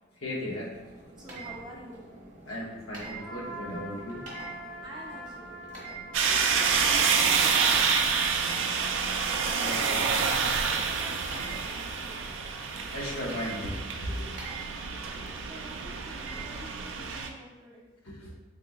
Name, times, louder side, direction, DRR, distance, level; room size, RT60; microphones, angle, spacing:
voice 1, 0.2-0.7 2.5-4.2 9.6-10.1 10.7-10.8 12.9-14.3 18.0-18.3, left 1 dB, 85° left, -4 dB, 1.0 m, -36 dB
sound 1, 0.7-17.2, right 4 dB, 35° right, 0.9 m, -45 dB
voice 2, 1.2-2.1 4.8-5.6 6.2-9.2 10.8-12.3 15.4-17.9, right 1 dB, 20° right, -4 dB, 0.6 m, -48 dB
Trumpet, 3.1-9.5, equal, 10° left, 1.1 m, -45 dB
Traffic on wet roads, 6.1-17.3, right 5 dB, 65° right, 0.3 m, -28 dB
3.6 x 3.4 x 2.3 m, 1.1 s
head